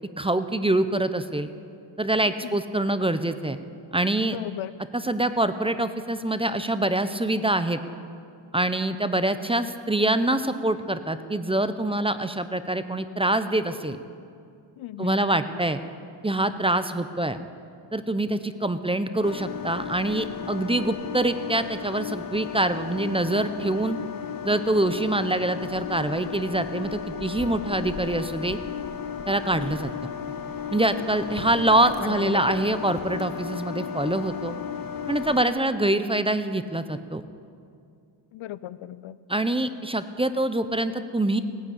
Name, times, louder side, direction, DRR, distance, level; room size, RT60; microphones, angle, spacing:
voice 1, 0.2-1.5 2.0-3.6 3.9-4.4 4.9-7.8 8.5-14.0 15.0-15.8 16.2-17.4 17.9-24.0 24.4-28.6 29.3-29.9 30.7-34.5 35.1-37.2 39.3-41.4, right 1 dB, 10° right, 11 dB, 0.6 m, -25 dB
voice 2, 4.3-4.7 14.8-15.2 31.8-32.4 38.3-39.2, left 13 dB, 80° left, 17 dB, 0.6 m, -36 dB
sound 1, 19.2-35.4, left 7 dB, 45° left, 1.0 m, -34 dB
17.5 x 9.9 x 8.5 m, 2.4 s
cardioid pair, 100°, 47 cm